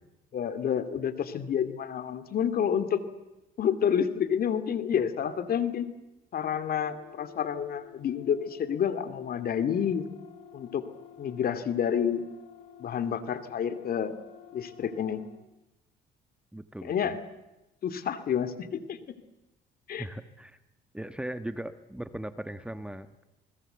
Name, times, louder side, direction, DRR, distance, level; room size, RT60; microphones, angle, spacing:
voice 1, 0.3-3.0 3.6-5.9 6.3-10.0 10.5-10.8 11.2-12.2 12.8-14.1 14.5-15.2 16.8-17.2 17.8-19.0 19.9-20.0, left 8 dB, 55° left, 11 dB, 2.5 m, -29 dB
sound 1, 6.3-15.4, left 9 dB, 85° left, 5.9 m, -51 dB
voice 2, 16.5-17.1 20.0-20.6 20.9-23.2, right 1 dB, 5° right, 10 dB, 1.3 m, -38 dB
28.0 x 20.5 x 8.0 m, 0.96 s
cardioid pair, 95°, 19 cm